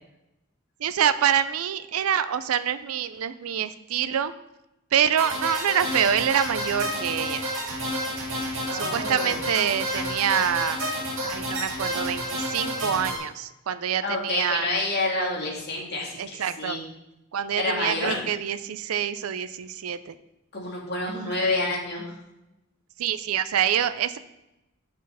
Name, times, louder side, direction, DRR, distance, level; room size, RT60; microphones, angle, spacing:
voice 1, 0.8-4.3 4.9-7.5 8.7-10.8 11.2-14.7 16.2-16.8 17.3-20.1 21.1-21.4 23.0-24.2, right 9 dB, 90° right, 13 dB, 0.4 m, -26 dB
sound 1, 5.2-13.2, equal, 65° right, 2.2 m, -30 dB
voice 2, 8.7-9.4 14.0-16.8 17.6-18.2 20.5-22.2, left 2 dB, 50° left, -2 dB, 2.0 m, -28 dB
6.3 x 6.3 x 5.5 m, 0.94 s
head